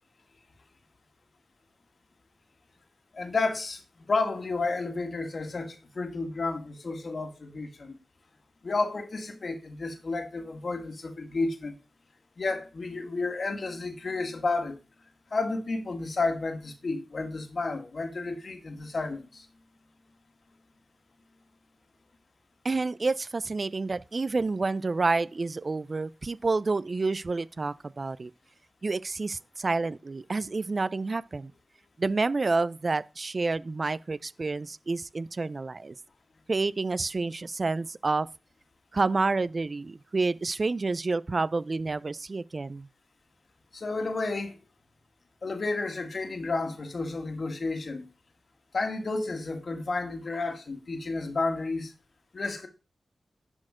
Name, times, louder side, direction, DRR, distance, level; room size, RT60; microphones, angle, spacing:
voice 1, 3.1-8.0 8.6-11.8 12.4-14.8 15.3-19.5 43.7-44.6 45.4-48.0 48.7-51.9 52.3-52.7, left 3 dB, 60° left, 1.6 m, -31 dB
voice 2, 22.6-28.3 28.8-31.5 32.0-35.9 36.5-38.3 38.9-42.9, right 3 dB, 50° right, 0.3 m, -29 dB
10.5 x 4.3 x 4.9 m
cardioid pair, 50°, 0 cm